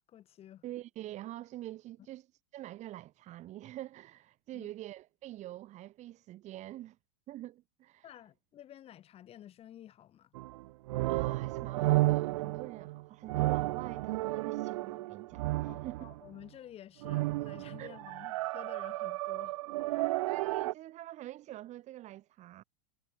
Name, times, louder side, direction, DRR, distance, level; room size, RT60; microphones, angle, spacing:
voice 1, 0.0-0.6 4.5-4.7 8.0-10.3 15.6-19.6, left 11 dB, 30° left, 2.2 m, -52 dB
voice 2, 0.6-2.3 2.5-7.0 7.3-8.1 11.1-16.1 17.8-18.0 20.3-22.6, right 14 dB, 40° right, 3.7 m, -46 dB
sound 1, 10.3-16.3 17.0-20.7, right 19 dB, 60° right, 0.4 m, -32 dB
hypercardioid pair, 100°, 19 cm